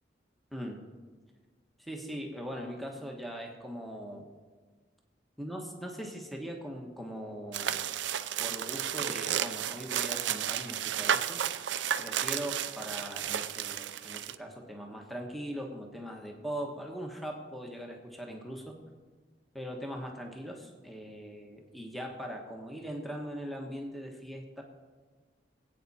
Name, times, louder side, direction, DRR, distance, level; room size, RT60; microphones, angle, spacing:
voice 1, 0.5-0.8 1.8-4.3 5.4-7.8 8.4-11.5 12.0-18.8 19.5-24.6, equal, ahead, 1 dB, 1.3 m, -40 dB
sound 1, 7.5-14.4, right 10 dB, 85° right, 0.5 m, -32 dB
23.0 x 8.7 x 4.2 m, 1.5 s
head